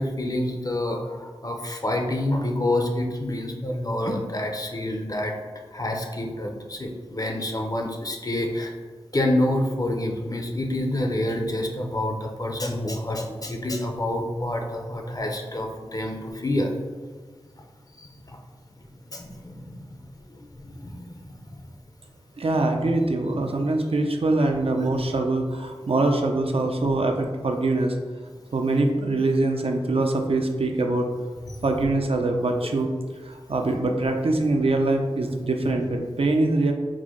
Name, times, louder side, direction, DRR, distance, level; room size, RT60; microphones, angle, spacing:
voice 1, 0.0-5.3 5.7-8.7 9.1-16.7 18.0-18.1 19.1-19.9 20.5-21.4 31.5-31.6, left 1 dB, 35° left, 2 dB, 0.6 m, -27 dB
voice 2, 22.4-28.0 28.5-31.1 31.6-32.9 33.2-36.7, right 2 dB, 65° right, 3 dB, 0.5 m, -23 dB
4.8 x 2.1 x 3.7 m, 1.5 s
wide cardioid pair, 50°, 10 cm